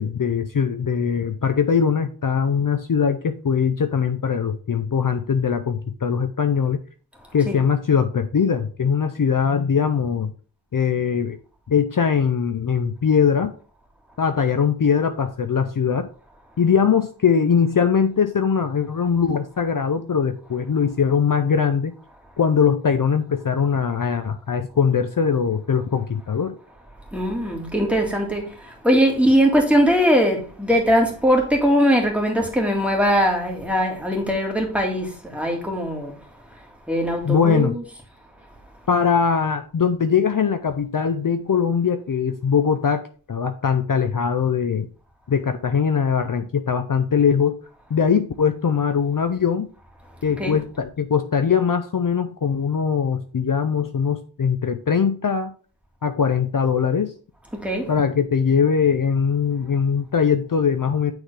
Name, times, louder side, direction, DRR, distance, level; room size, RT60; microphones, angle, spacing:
voice 1, 0.0-6.8 7.3-10.3 10.7-11.4 11.7-13.5 14.2-16.1 16.6-22.0 22.4-26.6 37.2-37.7 38.9-43.0 43.3-44.9 45.3-47.6 47.9-49.7 50.2-55.5 56.0-57.1 57.9-61.1, left 6 dB, 55° left, 0.6 m, -21 dB
voice 2, 27.1-36.1 36.9-37.8 50.4-50.6 57.5-57.9, equal, 5° right, 1.9 m, -21 dB
8.9 x 3.8 x 3.3 m
wide cardioid pair, 50°, 39 cm